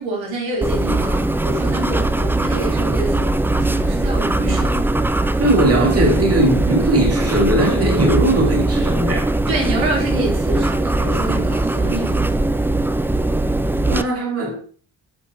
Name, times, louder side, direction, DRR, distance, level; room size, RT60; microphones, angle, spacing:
voice 1, 0.0-4.9 9.5-12.3, right 1 dB, 80° right, 3.9 m, -27 dB
sound 1, 0.6-14.0, right 2 dB, 5° right, 0.3 m, -20 dB
voice 2, 5.4-9.3 13.9-14.6, right 1 dB, 30° right, 2.6 m, -18 dB
10.0 x 5.8 x 3.0 m
cardioid pair, 75°, 45 cm